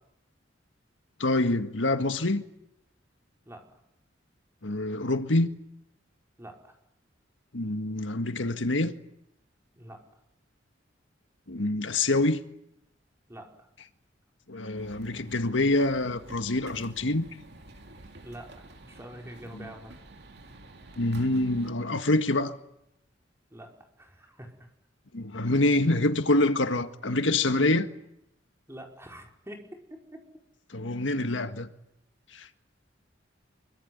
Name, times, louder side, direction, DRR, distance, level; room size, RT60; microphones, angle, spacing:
voice 1, 1.2-2.4 4.6-5.5 7.5-8.9 11.5-12.4 14.5-17.2 21.0-22.6 25.1-27.9 30.7-31.7 32.3-32.5, left 2 dB, 90° left, 1.8 m, -26 dB
voice 2, 3.5-3.8 6.4-6.7 9.7-10.0 13.3-13.5 18.2-19.9 23.5-23.7 24.0-24.7 28.7-29.6 30.1-30.2, right 1 dB, 15° right, 5.2 m, -45 dB
sound 1, 14.8-21.7, right 1 dB, 60° right, 2.9 m, -49 dB
25.0 x 24.0 x 9.6 m
head